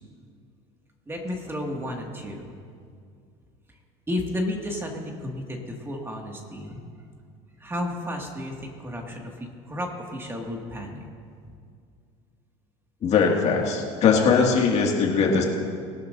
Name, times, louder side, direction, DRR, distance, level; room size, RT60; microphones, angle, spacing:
voice 1, 1.1-2.5 4.1-6.8 7.6-11.1, left 1 dB, 15° right, 0 dB, 2.0 m, -32 dB
voice 2, 13.0-15.4, left 5 dB, 45° left, 0 dB, 2.1 m, -20 dB
20.5 x 12.0 x 2.6 m, 2.2 s
supercardioid pair, 100°, 15 cm